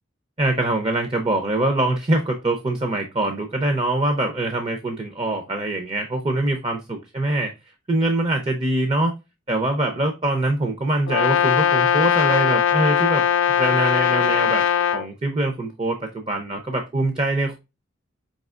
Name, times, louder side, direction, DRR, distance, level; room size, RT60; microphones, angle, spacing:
voice 1, 0.4-7.5 7.9-9.1 9.5-13.2 13.6-14.6 14.9-17.6, right 2 dB, 25° right, 5 dB, 0.5 m, -23 dB
Brass instrument, 11.1-15.1, left 8 dB, 90° left, 0.4 m, -19 dB
5.3 x 2.8 x 2.4 m, 0.25 s
head